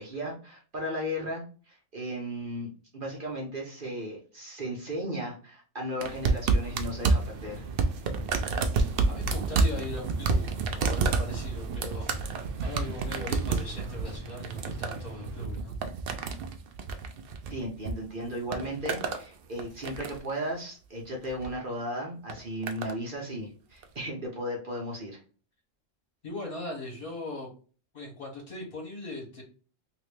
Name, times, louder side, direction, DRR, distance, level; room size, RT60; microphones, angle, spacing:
voice 1, 0.0-7.6 17.5-25.2, equal, 45° right, -2 dB, 1.0 m, -35 dB
sound 1, 6.0-17.9 18.2-19.2 19.6-20.3 21.2-21.5 22.3-23.0 23.8-23.9, right 4 dB, 60° right, 0.6 m, -29 dB
sound 2, 6.6-15.5, right 3 dB, 80° right, 1.0 m, -46 dB
voice 2, 9.1-15.8 26.2-27.5 27.9-29.4, left 1 dB, 45° left, -2 dB, 1.5 m, -39 dB
3.0 x 2.9 x 3.2 m, 0.39 s
omnidirectional pair, 1.3 m